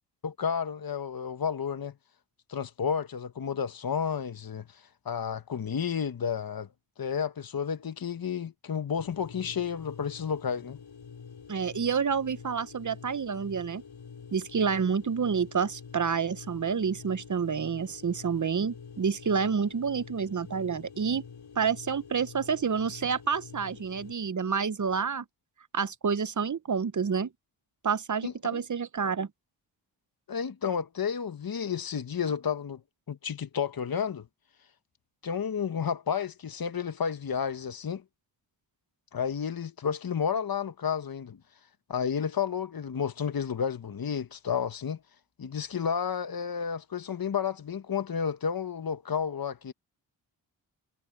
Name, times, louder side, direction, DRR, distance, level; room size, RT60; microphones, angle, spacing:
voice 1, 0.2-1.9 2.5-6.7 7.0-10.8 28.2-28.6 30.3-32.8 33.1-34.3 35.2-38.0 39.1-41.4 41.9-45.0 45.4-49.7, left 7 dB, 50° left, 1.4 m, -31 dB
sound 1, 9.0-24.1, left 6 dB, 65° left, 6.5 m, -47 dB
voice 2, 11.5-13.8 14.3-21.2 21.6-25.2 25.7-27.3 27.8-29.3, right 6 dB, 40° right, 1.0 m, -29 dB
supercardioid pair, 45°, 47 cm